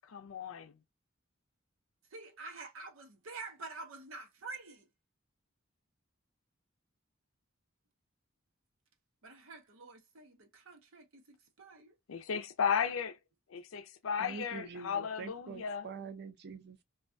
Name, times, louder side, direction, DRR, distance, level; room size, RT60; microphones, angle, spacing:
voice 1, 0.1-0.7 12.1-13.2 13.5-15.9, left 7 dB, 80° left, 0.5 m, -35 dB
voice 2, 2.1-4.8 9.2-11.9, right 3 dB, 85° right, 0.8 m, -48 dB
voice 3, 14.2-16.8, right 5 dB, 55° right, 0.5 m, -45 dB
2.4 x 2.2 x 2.4 m
head